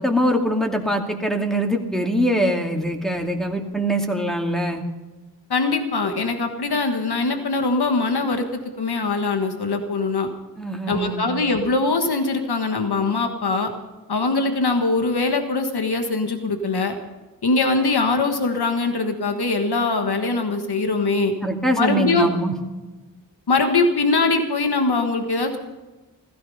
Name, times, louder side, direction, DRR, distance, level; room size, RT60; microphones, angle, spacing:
voice 1, 0.0-4.8 10.6-11.3 21.4-22.5, equal, ahead, 1 dB, 2.4 m, -23 dB
voice 2, 5.5-10.3 10.9-13.7 14.1-16.9 17.4-21.3 21.8-22.3 23.5-25.6, left 3 dB, 85° left, 5 dB, 1.5 m, -22 dB
15.5 x 14.5 x 5.5 m, 1.2 s
wide cardioid pair, 50°, 38 cm